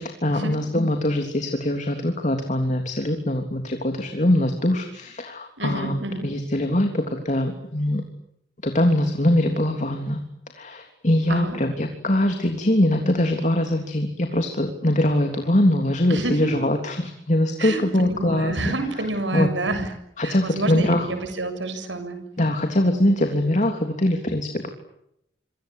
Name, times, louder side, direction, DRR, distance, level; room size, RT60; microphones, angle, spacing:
voice 1, 0.0-5.9 6.2-8.0 8.6-10.2 10.5-18.6 19.3-19.5 20.2-21.1 22.4-24.7, left 1 dB, 40° left, 5 dB, 3.3 m, -22 dB
voice 2, 5.6-6.3 11.3-11.6 16.1-16.5 17.6-19.9 20.2-22.2, right 2 dB, 85° right, 8 dB, 7.3 m, -28 dB
27.5 x 25.5 x 8.6 m, 0.79 s
head